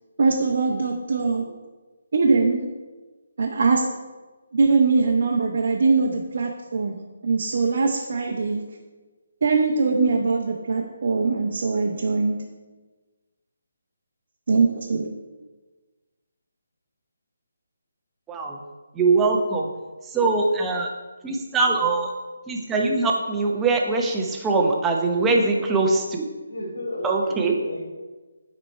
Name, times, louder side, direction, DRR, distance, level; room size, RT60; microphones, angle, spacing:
voice 1, 0.2-1.4 2.1-2.6 3.4-3.8 4.5-8.6 9.4-12.4 14.5-15.1, right 4 dB, 55° right, 0 dB, 0.8 m, -22 dB
voice 2, 18.3-18.6 18.9-19.7 20.1-20.9 21.2-22.1 22.5-26.2 27.0-27.6, right 3 dB, 10° right, 0 dB, 0.8 m, -22 dB
voice 3, 25.1-25.8 26.5-27.8, left 1 dB, 75° left, -2 dB, 2.6 m, -34 dB
9.1 x 4.4 x 4.4 m, 1.3 s
figure-of-eight pair, 150°, 0 cm